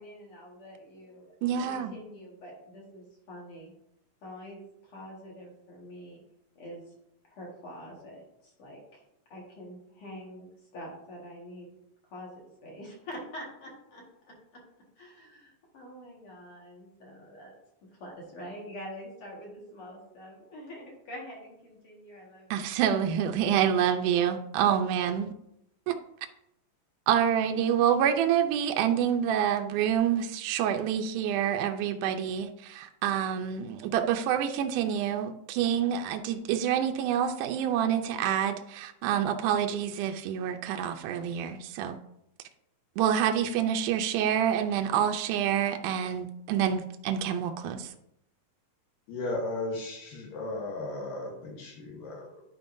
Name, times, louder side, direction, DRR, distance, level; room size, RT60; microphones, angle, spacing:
voice 1, 0.0-1.3 1.6-3.7 4.2-6.2 6.6-6.9 7.2-9.0 9.3-11.7 12.0-14.3 15.0-17.5 18.0-23.0, equal, 50° left, -2 dB, 2.1 m, -45 dB
voice 2, 1.4-1.9 22.5-25.3 25.9-26.0 27.1-42.0 43.0-47.9, right 9 dB, 80° right, 4 dB, 1.9 m, -27 dB
voice 3, 49.1-52.3, left 2 dB, 75° left, -1 dB, 2.8 m, -35 dB
10.5 x 5.1 x 2.6 m, 0.78 s
omnidirectional pair, 4.1 m